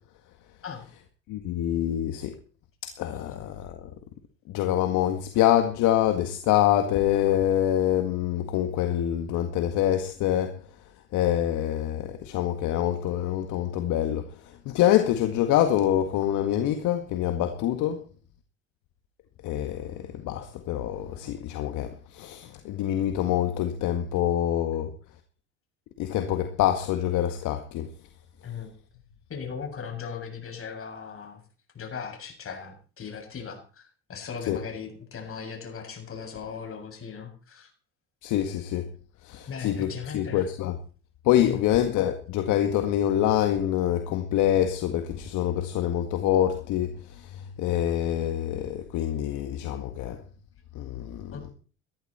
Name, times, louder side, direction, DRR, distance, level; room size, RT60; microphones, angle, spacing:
voice 1, 1.3-2.3 2.8-3.7 4.5-10.5 11.1-14.3 14.7-18.0 19.4-24.9 26.0-27.9 34.5-34.6 38.2-38.9 39.3-40.7 41.3-46.9 47.6-50.2 50.8-51.3, left 11 dB, 65° left, 1.9 m, -25 dB
voice 2, 29.3-31.4 31.7-37.7 39.5-40.5 41.4-41.6 51.3-51.5, left 6 dB, 40° left, 7.3 m, -38 dB
19.5 x 13.5 x 4.4 m
hypercardioid pair, 70°, 33 cm